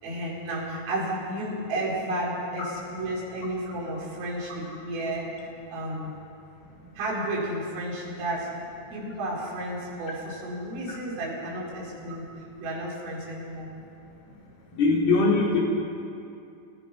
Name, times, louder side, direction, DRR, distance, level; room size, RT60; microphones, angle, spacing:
voice 1, 0.0-6.2 7.0-8.5 8.9-13.7, right 1 dB, 75° right, -5 dB, 7.7 m, -32 dB
voice 2, 14.7-15.6, left 3 dB, 55° left, -3 dB, 5.3 m, -21 dB
29.5 x 20.0 x 5.5 m, 2.6 s
omnidirectional pair, 5.8 m